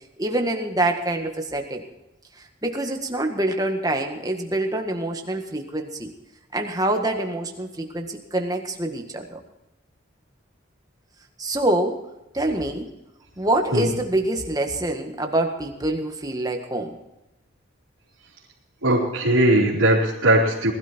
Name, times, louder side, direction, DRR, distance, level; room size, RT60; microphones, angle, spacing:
voice 1, 0.2-1.8 2.4-6.1 6.5-9.4 11.4-12.0 12.3-12.9 13.4-16.9, right 1 dB, 20° right, 4 dB, 1.7 m, -25 dB
voice 2, 18.8-20.7, right 1 dB, 90° right, -6 dB, 3.6 m, -19 dB
20.0 x 12.5 x 4.5 m, 0.94 s
head